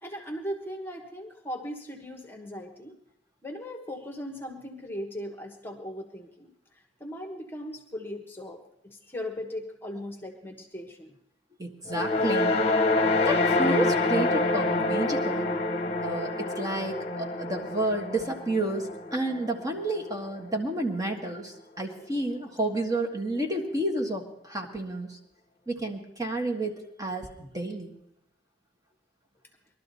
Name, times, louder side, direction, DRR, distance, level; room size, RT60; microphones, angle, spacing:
voice 1, 0.0-2.9 3.4-6.5 7.0-11.1, equal, 10° left, 3 dB, 1.3 m, -38 dB
voice 2, 11.6-12.6 13.2-15.5 16.0-25.2 25.7-27.9, right 1 dB, 20° right, 2 dB, 1.6 m, -31 dB
sound 1, 11.9-20.2, left 2 dB, 35° left, 1.1 m, -27 dB
20.5 x 12.5 x 4.2 m, 0.78 s
head